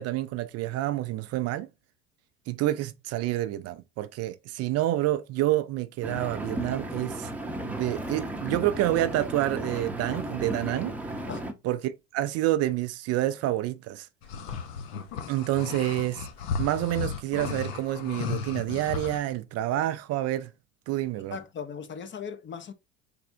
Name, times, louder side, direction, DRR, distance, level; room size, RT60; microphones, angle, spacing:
voice 1, 0.0-1.7 2.5-7.3 7.6-11.0 11.6-14.1 15.3-16.3 16.6-20.5 20.9-21.4, right 14 dB, 45° right, 0.4 m, -28 dB
Engine, 6.0-11.5, right 1 dB, 5° right, 0.7 m, -35 dB
sound 1, 14.2-19.2, left 6 dB, 70° left, 0.8 m, -34 dB
voice 2, 21.3-22.7, left 7 dB, 35° left, 0.8 m, -38 dB
3.4 x 3.3 x 2.6 m
hypercardioid pair, 80°, 34 cm